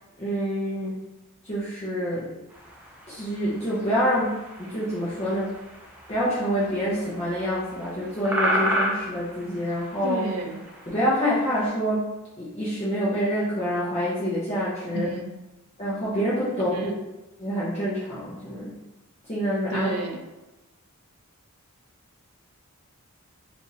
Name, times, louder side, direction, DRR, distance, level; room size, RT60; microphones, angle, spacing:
voice 1, 0.2-1.0 1.4-2.3 3.1-4.3 4.6-5.5 6.1-10.2 10.9-12.0 12.4-15.1 15.8-16.9 17.4-18.7 19.3-19.9, equal, 30° left, -10 dB, 0.7 m, -26 dB
sound 1, 2.5-11.7, right 1 dB, 5° right, 0.5 m, -33 dB
voice 2, 10.0-10.6 14.9-15.3 16.7-16.9 19.7-20.3, right 3 dB, 80° right, 3 dB, 0.4 m, -31 dB
3.4 x 2.5 x 2.7 m, 1.1 s
head